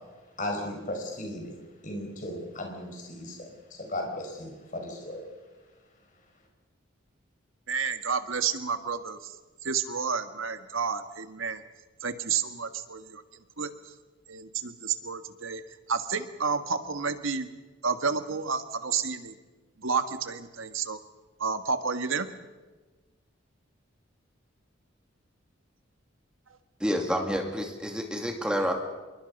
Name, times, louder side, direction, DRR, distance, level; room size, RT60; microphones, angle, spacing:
voice 1, 0.4-1.5 1.8-3.5 3.8-5.2, left 1 dB, 40° left, 2 dB, 5.2 m, -36 dB
voice 2, 7.7-9.4 9.6-11.6 12.0-13.2 13.6-13.9 14.3-15.6 15.9-17.5 17.8-19.3 19.8-21.0 21.4-22.3, right 5 dB, 85° right, 9 dB, 1.6 m, -30 dB
voice 3, 26.8-28.7, equal, 5° right, 3 dB, 2.5 m, -28 dB
26.5 x 23.0 x 5.4 m, 1.2 s
head